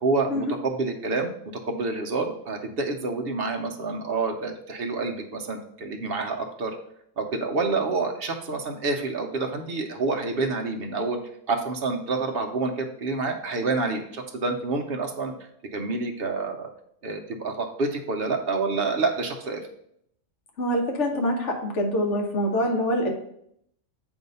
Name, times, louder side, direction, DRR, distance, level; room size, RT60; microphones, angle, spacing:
voice 1, 0.0-1.3 1.6-6.7 7.2-11.2 11.5-15.3 15.7-16.7 17.0-19.7, right 3 dB, 55° right, 3 dB, 0.8 m, -28 dB
voice 2, 20.6-23.1, equal, 60° left, 2 dB, 1.3 m, -25 dB
7.8 x 2.7 x 5.3 m, 0.72 s
omnidirectional pair, 1.4 m